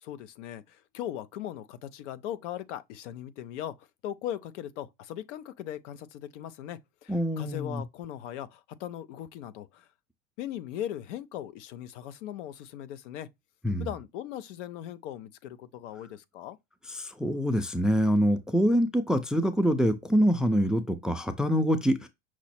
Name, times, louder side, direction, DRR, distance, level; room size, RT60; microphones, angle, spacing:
voice 1, 0.0-9.9 10.4-13.3 13.8-16.6, left 11 dB, 75° left, 0.6 m, -39 dB
voice 2, 7.1-7.8 13.6-13.9 16.9-22.1, equal, ahead, 0.3 m, -25 dB
6.0 x 2.0 x 4.2 m
supercardioid pair, 105°, 36 cm